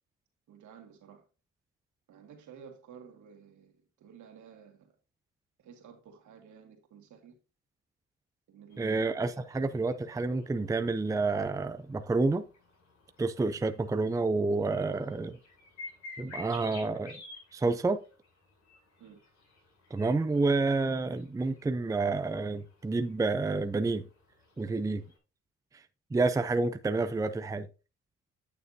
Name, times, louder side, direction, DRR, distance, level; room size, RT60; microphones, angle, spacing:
voice 1, 0.5-1.3 2.1-4.9 5.6-7.4 8.5-9.3 19.0-19.2, right 7 dB, 75° right, 2.1 m, -53 dB
sound 1, 8.7-25.2, left 3 dB, 70° left, 4.5 m, -53 dB
voice 2, 8.8-12.4 13.2-15.4 16.2-17.2 17.5-18.0 19.9-24.1 24.6-25.0 26.1-27.7, right 3 dB, 10° right, 0.5 m, -29 dB
9.1 x 6.7 x 2.7 m
cardioid pair, 90°, 30 cm